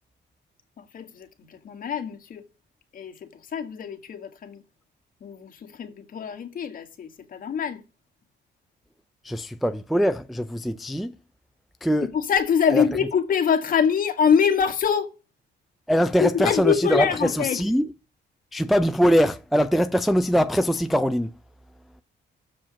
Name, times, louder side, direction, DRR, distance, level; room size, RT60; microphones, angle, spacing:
voice 1, 0.8-2.4 2.9-4.6 5.2-7.8 12.1-15.1 16.2-17.6, left 7 dB, 45° left, 1.7 m, -24 dB
voice 2, 9.2-11.2 11.8-12.1 12.7-12.8 15.9-17.9 18.5-21.3, equal, ahead, 0.4 m, -22 dB
7.3 x 4.9 x 6.2 m
cardioid pair, 145°, 19 cm